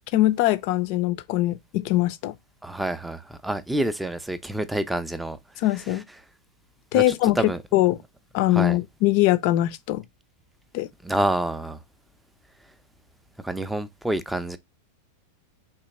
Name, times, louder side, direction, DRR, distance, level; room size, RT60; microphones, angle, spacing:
voice 1, 0.1-2.3 5.6-6.0 6.9-7.4 7.7-8.0 8.3-10.0 10.7-10.9, left 16 dB, 45° left, 0.5 m, -22 dB
voice 2, 2.6-5.4 6.9-7.6 8.5-8.8 11.0-11.8 13.4-14.6, right 1 dB, 5° right, 0.5 m, -27 dB
3.7 x 2.8 x 4.1 m
figure-of-eight pair, 90°, 0 cm